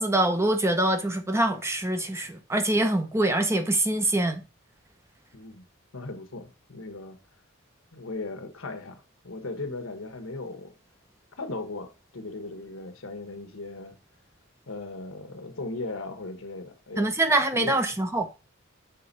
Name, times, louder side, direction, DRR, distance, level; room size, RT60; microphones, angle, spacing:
voice 1, 0.0-4.4 17.0-18.3, right 1 dB, 15° right, 0.6 m, -24 dB
voice 2, 5.3-5.6 5.9-7.2 7.9-10.7 11.4-14.0 14.7-17.2 17.5-17.8, left 2 dB, 75° left, 1.2 m, -37 dB
6.7 x 4.3 x 4.0 m
head